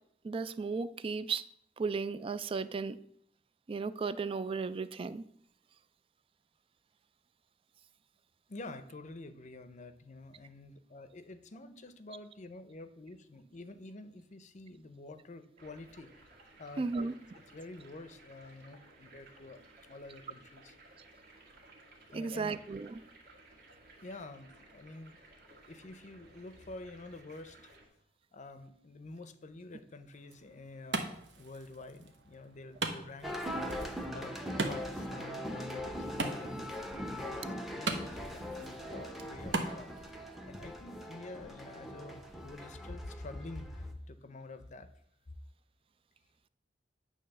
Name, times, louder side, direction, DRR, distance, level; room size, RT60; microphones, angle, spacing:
voice 1, 0.2-1.5 1.8-3.0 3.7-5.2 16.8-17.1 22.1-23.0, right 4 dB, 30° right, 14 dB, 0.3 m, -35 dB
voice 2, 8.5-16.3 16.6-17.1 17.5-20.7 22.1-22.6 24.0-25.2 25.7-27.8 28.3-31.1 31.4-33.8 34.1-36.7 37.1-44.9 45.3-45.4, left 2 dB, 45° left, 11 dB, 0.6 m, -48 dB
sound 1, 15.6-27.9, right 2 dB, 55° right, 1.8 m, -58 dB
Wood, 30.1-40.1, right 3 dB, 85° right, 0.9 m, -41 dB
sound 2, 33.2-43.9, equal, ahead, 0.7 m, -41 dB
8.9 x 3.2 x 6.5 m, 0.70 s
head